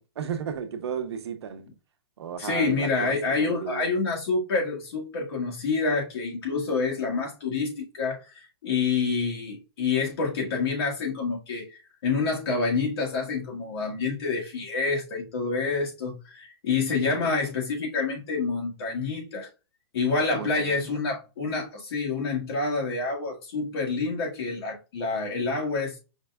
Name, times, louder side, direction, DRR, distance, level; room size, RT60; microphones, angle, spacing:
voice 1, 0.2-1.6 2.2-3.9 16.9-17.4 20.3-20.9, right 7 dB, 75° right, 0.9 m, -34 dB
voice 2, 2.4-19.5 19.9-26.0, left 4 dB, 65° left, 1.6 m, -28 dB
5.3 x 2.2 x 3.4 m
hypercardioid pair, 155°, 14 cm